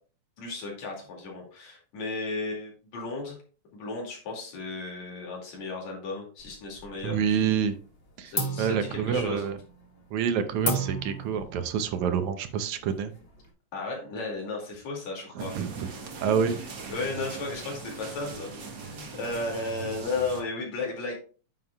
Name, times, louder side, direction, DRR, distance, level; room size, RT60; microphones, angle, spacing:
voice 1, 0.4-3.4 3.7-7.4 8.3-9.5 13.7-15.6 16.5-16.6 16.9-21.1, left 3 dB, 70° left, -1 dB, 3.7 m, -34 dB
sound 1, 6.4-7.3 7.6-8.0 8.3-13.5, equal, 40° left, 0.8 m, -35 dB
voice 2, 7.0-7.8 8.2-9.6 10.1-13.1 15.4-15.9 16.2-16.6, right 7 dB, 75° right, 9 dB, 2.1 m, -27 dB
sound 2, 15.4-20.4, right 4 dB, 50° right, 1.6 m, -40 dB
9.5 x 7.1 x 2.3 m, 0.39 s
omnidirectional pair, 3.4 m